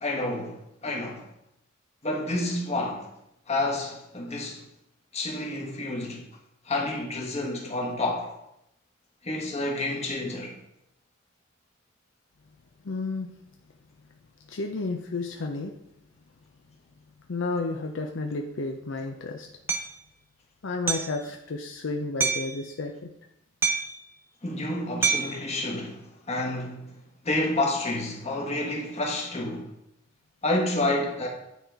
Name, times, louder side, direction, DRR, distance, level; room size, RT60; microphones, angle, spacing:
voice 1, 0.0-1.2 2.0-3.1 3.5-4.6 5.1-6.2 6.7-8.3 9.2-10.5 24.4-26.9 27.2-29.7 30.4-31.3, left 2 dB, 35° left, 1.4 m, -29 dB
voice 2, 12.8-13.3 14.5-15.7 17.3-19.5 20.6-23.1, left 3 dB, 65° left, 0.6 m, -31 dB
Hammer, 19.7-19.9 20.9-21.2 22.2-22.6 23.6-24.0 25.0-25.4, right 5 dB, 10° right, 0.6 m, -26 dB
9.3 x 3.9 x 4.6 m
head